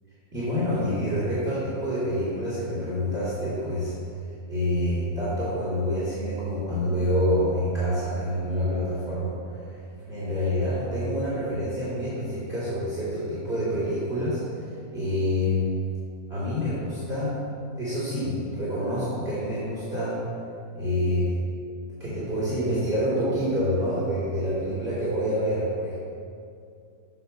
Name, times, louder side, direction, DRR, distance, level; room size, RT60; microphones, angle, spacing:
voice 1, 0.3-3.9 4.5-9.8 10.1-15.6 16.3-17.4 17.8-20.2 20.7-21.3 22.0-26.0, equal, 40° right, -11 dB, 3.4 m, -27 dB
9.9 x 7.8 x 5.7 m, 2.4 s
omnidirectional pair, 1.6 m